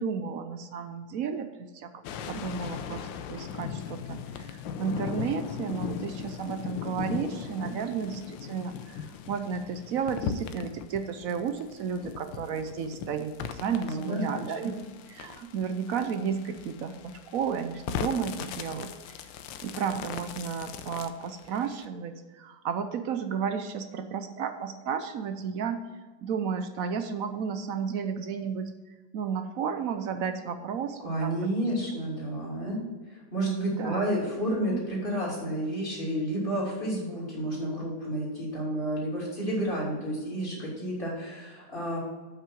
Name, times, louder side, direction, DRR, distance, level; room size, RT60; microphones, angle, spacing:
voice 1, 0.0-14.7 15.1-19.2 19.6-25.9 26.2-28.7 29.1-31.5 33.8-34.1 34.5-34.6, right 6 dB, 70° right, 8 dB, 0.8 m, -33 dB
sound 1, 2.0-21.8, left 7 dB, 80° left, 1.4 m, -39 dB
voice 2, 13.8-14.4 31.0-32.8 33.1-42.0, right 1 dB, 25° left, -5 dB, 3.3 m, -31 dB
8.5 x 5.7 x 5.9 m, 1.3 s
omnidirectional pair, 2.1 m